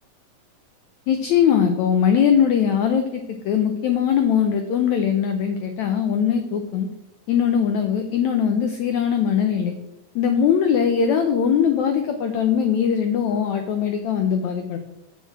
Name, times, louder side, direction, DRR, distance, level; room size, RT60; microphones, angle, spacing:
voice 1, 1.1-6.9 7.3-9.7 10.1-14.8, left 8 dB, 80° left, 6 dB, 1.6 m, -21 dB
6.8 x 6.6 x 7.3 m, 0.86 s
omnidirectional pair, 4.3 m